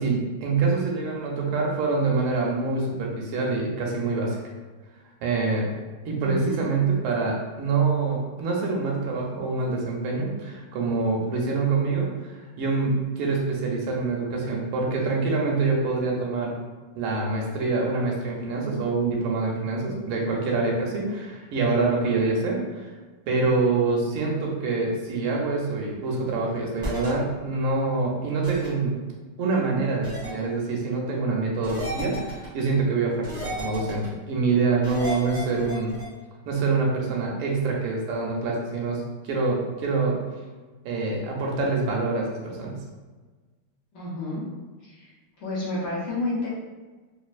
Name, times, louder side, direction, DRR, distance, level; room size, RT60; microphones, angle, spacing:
voice 1, 0.0-4.4 5.2-5.7 6.0-16.5 16.9-22.8 23.3-28.9 29.4-35.9 36.4-40.2 40.8-42.8, right 3 dB, 85° right, -1 dB, 1.6 m, -25 dB
voice 2, 6.2-6.7 43.9-44.4 44.8-45.1 45.4-46.5, left 2 dB, 60° left, -7 dB, 1.4 m, -30 dB
sound 1, 26.8-27.1 28.4-28.7 30.0-30.3 31.6-32.5 33.2-34.1 34.8-36.1, right 1 dB, 5° right, 0.4 m, -33 dB
4.2 x 2.5 x 2.4 m, 1.3 s
omnidirectional pair, 2.3 m